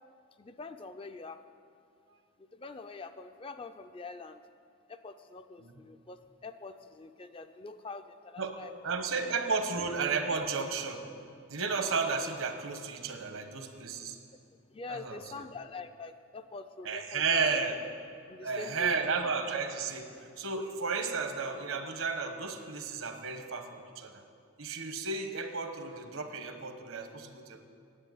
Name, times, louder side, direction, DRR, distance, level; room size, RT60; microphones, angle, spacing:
voice 1, 0.4-1.4 2.4-4.4 4.9-8.7 14.7-17.4 18.3-19.0, left 3 dB, 25° left, 9 dB, 0.4 m, -44 dB
voice 2, 8.8-11.0 11.5-14.2 14.9-15.4 16.8-17.8 18.4-20.1 20.4-24.2 24.6-27.6, right 4 dB, 75° right, 6 dB, 1.2 m, -33 dB
9.9 x 8.6 x 9.4 m, 2.3 s
head